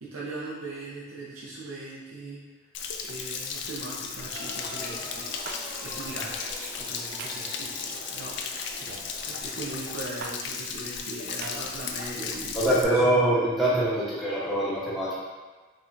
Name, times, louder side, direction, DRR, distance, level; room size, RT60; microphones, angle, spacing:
voice 1, 0.0-2.4 3.0-5.3 5.8-13.2, right 2 dB, 90° right, -6 dB, 0.8 m, -39 dB
Stream / Splash splatter / Trickle dribble, 2.7-12.8, left 6 dB, 55° left, 0.4 m, -35 dB
sound 1, 4.3-10.0, left 1 dB, 25° left, 1.5 m, -44 dB
sound 2, 5.4-5.6 7.2-7.5 8.8-9.1 10.2-10.4 11.4-11.6, right 4 dB, 50° right, 0.4 m, -39 dB
voice 2, 12.5-15.1, right 1 dB, ahead, -10 dB, 1.2 m, -24 dB
5.4 x 3.5 x 2.7 m, 1.3 s
head